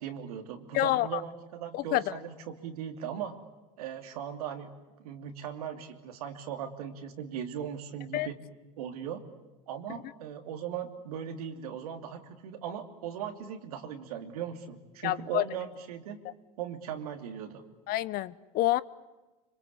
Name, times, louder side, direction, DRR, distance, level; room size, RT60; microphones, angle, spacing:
voice 1, 0.0-3.3 3.8-4.7 5.0-8.4 8.8-9.2 9.7-16.2 16.6-17.6, right 9 dB, 80° right, 6 dB, 2.9 m, -38 dB
voice 2, 0.7-1.2 1.7-2.0 8.1-8.3 15.0-15.4 17.9-18.8, left 15 dB, 55° left, 18 dB, 1.0 m, -27 dB
25.5 x 25.5 x 8.4 m, 1.1 s
hypercardioid pair, 90°, 19 cm